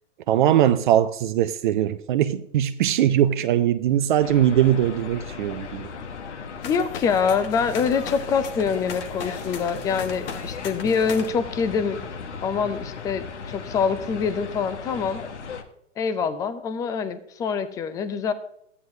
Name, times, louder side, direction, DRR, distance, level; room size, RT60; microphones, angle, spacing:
voice 1, 0.3-5.9, right 11 dB, 40° right, 0.6 m, -21 dB
sound 1, 4.2-15.6, left 5 dB, 65° left, 1.4 m, -36 dB
sound 2, 6.6-11.3, left 6 dB, 50° left, 1.4 m, -39 dB
voice 2, 6.6-12.0 12.4-15.2 16.0-18.3, left 6 dB, 10° left, 0.4 m, -25 dB
14.0 x 9.7 x 2.7 m
figure-of-eight pair, 110°, 37 cm